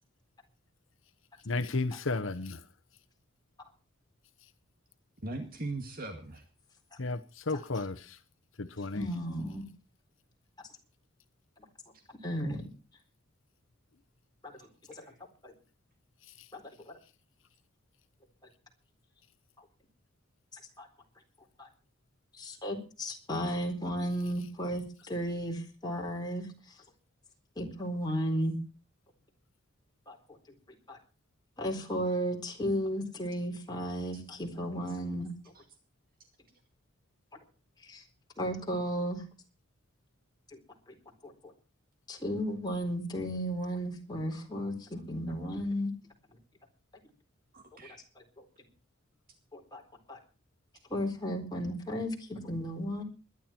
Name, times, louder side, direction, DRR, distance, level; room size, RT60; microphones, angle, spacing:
voice 1, 1.4-2.7 7.0-8.2 8.6-9.1 16.3-16.5, left 3 dB, 70° left, 1.0 m, -33 dB
voice 2, 5.2-6.4 11.9-12.0 14.6-14.7 15.0-15.1 35.5-35.6 47.5-48.0, right 2 dB, 45° right, 2.2 m, -40 dB
voice 3, 8.9-9.7 12.2-12.7 14.4-14.5 15.0-15.1 15.4-15.5 16.5-16.9 20.8-20.9 21.6-21.7 22.4-25.5 25.8-26.5 27.6-28.6 30.1-30.2 30.9-31.0 31.6-35.3 37.8-38.0 38.4-39.2 41.2-41.3 42.1-45.9 48.2-48.3 49.5-49.8 50.1-50.2 50.9-53.0, equal, 20° left, 4.2 m, -34 dB
21.5 x 11.0 x 4.5 m
head